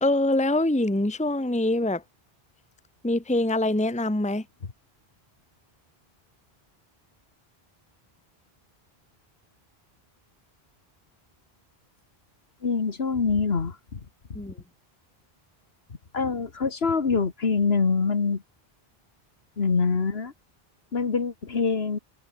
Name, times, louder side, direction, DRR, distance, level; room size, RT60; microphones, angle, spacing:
voice 1, 0.0-2.0 3.0-4.4 14.3-14.5, left 1 dB, 5° left, 1.1 m, -24 dB
voice 2, 12.6-14.0 16.1-18.4 19.6-20.3 20.9-22.0, left 5 dB, 75° left, 1.9 m, -25 dB
omnidirectional pair, 1.0 m